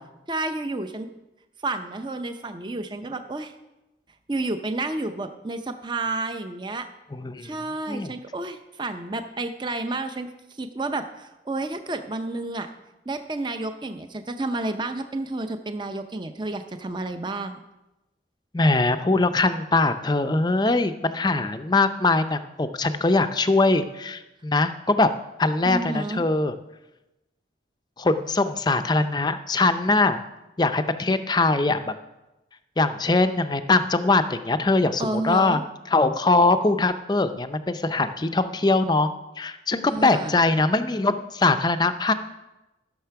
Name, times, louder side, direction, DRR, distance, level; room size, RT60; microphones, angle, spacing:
voice 1, 0.3-1.1 1.6-3.5 4.3-6.9 7.4-10.3 10.6-12.7 13.1-17.6 25.6-26.2 35.0-35.6 39.9-40.4, right 2 dB, 25° right, 8 dB, 0.6 m, -30 dB
voice 2, 7.1-7.6 7.9-8.1 18.5-25.1 25.4-26.5 28.0-30.2 30.6-31.9 32.8-35.6 35.9-39.1 39.4-42.1, left 3 dB, 20° left, 10 dB, 0.5 m, -22 dB
13.5 x 6.6 x 5.8 m, 0.99 s
head